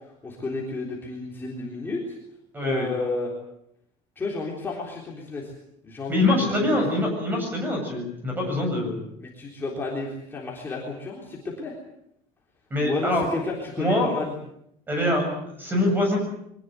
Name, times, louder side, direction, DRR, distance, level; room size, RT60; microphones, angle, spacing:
voice 1, 0.2-2.2 2.6-3.3 4.2-5.5 5.8-6.6 9.2-11.8 12.8-14.3, left 3 dB, 15° left, -3 dB, 3.6 m, -31 dB
voice 2, 2.5-2.9 6.1-9.0 12.7-13.2 13.8-14.1 14.9-16.2, left 1 dB, 15° right, 2 dB, 7.9 m, -24 dB
24.0 x 19.5 x 8.1 m, 0.76 s
cardioid pair, 180°, 14 cm